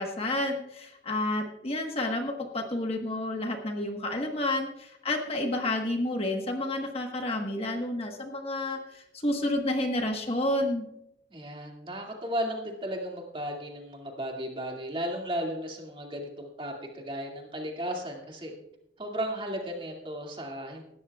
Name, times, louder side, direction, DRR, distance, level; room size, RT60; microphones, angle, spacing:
voice 1, 0.0-10.8, left 1 dB, 35° left, 3 dB, 1.3 m, -30 dB
voice 2, 11.3-18.5 19.0-20.8, equal, 30° right, 1 dB, 2.3 m, -35 dB
19.0 x 13.0 x 2.4 m, 0.79 s
head